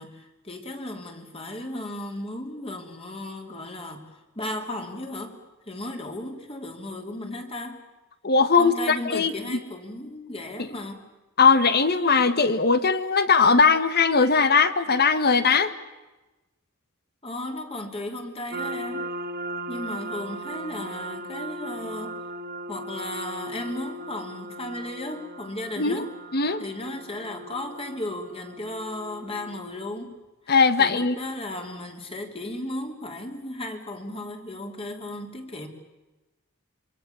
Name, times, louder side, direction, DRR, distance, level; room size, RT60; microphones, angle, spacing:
voice 1, 0.0-7.8 8.6-11.0 17.2-19.1 19.7-22.2 22.7-26.1 26.6-30.2 30.8-35.7, left 1 dB, 30° left, 4 dB, 3.4 m, -35 dB
voice 2, 8.2-9.6 11.4-15.7 25.8-26.0 26.3-26.6 30.5-31.1, left 5 dB, 50° left, 12 dB, 1.6 m, -20 dB
sound 1, 18.5-29.8, right 1 dB, 50° right, 2.0 m, -37 dB
27.0 x 24.5 x 7.1 m, 1.1 s
head